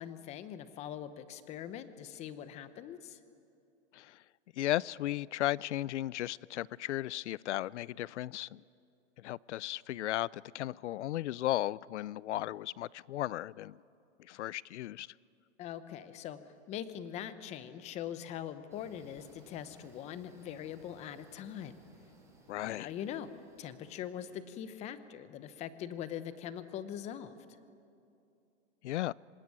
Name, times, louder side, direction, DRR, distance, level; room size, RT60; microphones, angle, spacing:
voice 1, 0.0-3.2 15.6-16.4 16.7-21.8 22.6-23.3 23.6-27.4, left 10 dB, 20° left, 0.8 m, -42 dB
voice 2, 4.5-8.6 9.2-13.8 14.2-15.1 22.5-22.9 28.8-29.1, left 14 dB, 80° left, 0.5 m, -35 dB
sound 1, 18.7-24.4, right 2 dB, 10° right, 4.1 m, -61 dB
25.5 x 19.5 x 9.6 m
supercardioid pair, 160°, 34 cm